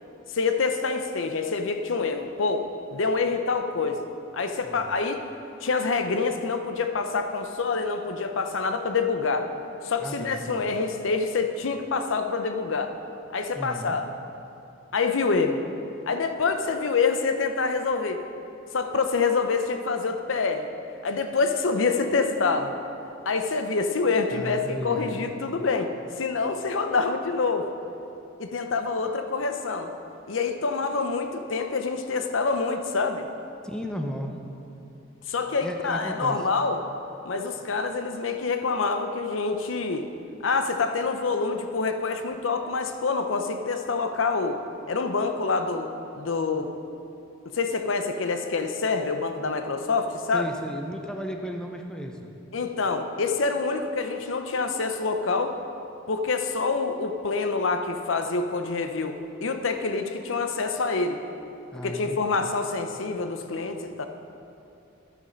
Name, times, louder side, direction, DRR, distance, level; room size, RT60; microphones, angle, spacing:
voice 1, 0.3-4.1 4.3-5.2 5.6-9.5 9.8-12.9 13.3-14.1 14.9-15.6 16.0-18.2 18.7-20.7 21.0-22.8 23.3-25.9 26.2-27.7 28.4-29.9 30.3-33.3 35.3-36.8 37.2-40.1 40.4-44.6 44.9-46.7 47.5-50.5 52.5-55.6 56.1-61.2 61.8-64.1, left 4 dB, 75° left, 7 dB, 0.6 m, -26 dB
voice 2, 10.0-10.7 13.5-14.0 24.3-25.2 33.6-34.4 35.6-36.4 50.3-52.2 61.7-62.4, equal, 5° left, 3 dB, 0.6 m, -34 dB
11.0 x 7.4 x 5.2 m, 2.7 s
head